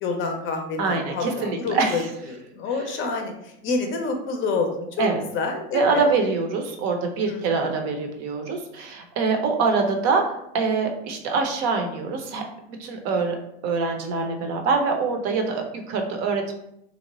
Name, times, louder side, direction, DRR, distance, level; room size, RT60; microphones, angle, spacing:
voice 1, 0.0-2.0 2.3-5.1 5.3-6.0 7.3-7.7, left 4 dB, 35° left, 3 dB, 0.5 m, -28 dB
voice 2, 0.8-2.1 5.0-5.2 5.7-10.2 10.5-12.4 12.8-13.4 13.6-16.5, right 4 dB, 50° right, 4 dB, 0.7 m, -24 dB
2.9 x 2.1 x 3.9 m, 0.79 s
supercardioid pair, 120°, 34 cm